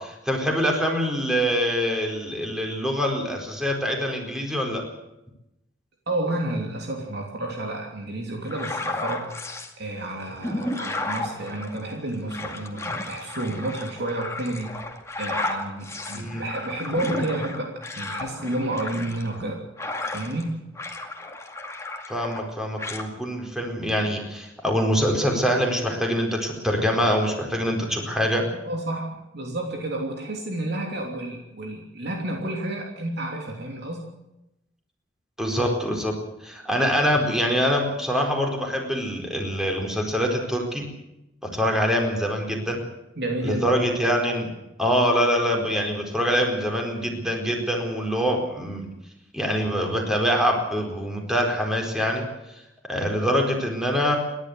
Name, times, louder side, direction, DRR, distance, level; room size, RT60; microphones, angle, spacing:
voice 1, 0.0-4.8 16.1-16.4 22.1-28.4 35.4-36.2 36.4-40.9 41.4-42.8 43.4-44.5 44.8-48.9 49.3-52.3 52.9-54.2, equal, 5° right, 1 dB, 4.5 m, -24 dB
voice 2, 6.1-9.3 9.8-14.7 15.2-19.6 20.1-20.6 28.6-34.0 43.2-43.7, right 1 dB, 60° right, 1 dB, 3.1 m, -30 dB
sound 1, 8.4-9.7 10.2-20.5 20.7-22.5 22.8-23.1, left 2 dB, 15° left, 2.2 m, -33 dB
28.5 x 12.0 x 8.1 m, 0.89 s
head